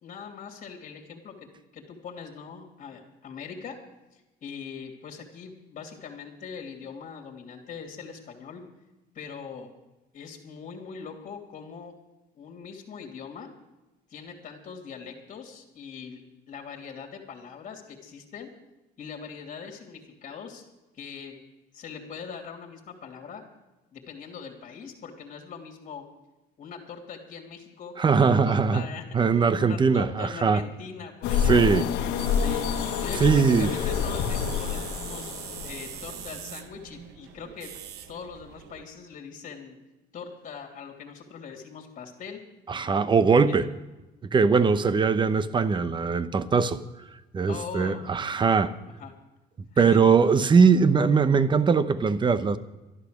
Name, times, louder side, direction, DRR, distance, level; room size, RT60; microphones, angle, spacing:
voice 1, 0.0-1.5 1.7-3.8 4.1-8.6 9.1-9.7 10.1-11.9 12.3-13.5 14.1-16.2 16.5-18.5 19.0-20.6 20.9-21.4 21.7-23.4 23.9-26.0 26.6-31.8 32.3-32.7 33.0-35.3 35.6-37.7 38.1-39.8 40.1-42.4 43.4-43.7 47.5-48.0 48.9-49.1 49.7-49.9, left 6 dB, 50° left, 2.8 m, -41 dB
voice 2, 28.0-28.8 29.1-30.6 31.5-31.9 33.2-33.7 42.7-43.7 44.3-46.8 47.3-48.7 49.8-52.6, right 5 dB, 30° right, 0.8 m, -21 dB
sound 1, 31.2-36.3, left 8 dB, 90° left, 1.2 m, -28 dB
sound 2, 32.2-38.8, right 10 dB, 80° right, 1.0 m, -42 dB
12.5 x 11.5 x 6.5 m
cardioid pair, 110°, 17 cm